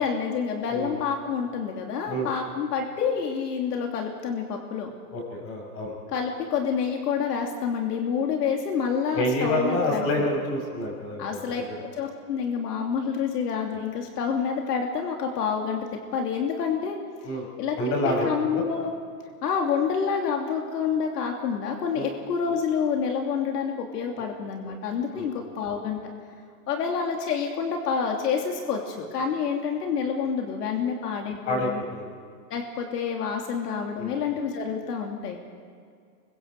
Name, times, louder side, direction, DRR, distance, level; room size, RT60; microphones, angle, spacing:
voice 1, 0.0-4.9 6.1-10.3 11.2-11.6 12.0-15.9 16.1-17.0 17.6-17.8 18.0-18.9 19.4-26.0 26.7-31.8 32.5-35.4, left 6 dB, 80° left, 1 dB, 3.0 m, -28 dB
voice 2, 5.1-5.9 9.1-11.4 17.2-17.5 17.8-18.6 21.9-22.1 24.6-24.7 25.1-25.3 31.4-32.1 34.0-34.1, left 1 dB, 30° left, 1 dB, 6.1 m, -28 dB
27.0 x 23.5 x 4.8 m, 2.2 s
supercardioid pair, 160°, 47 cm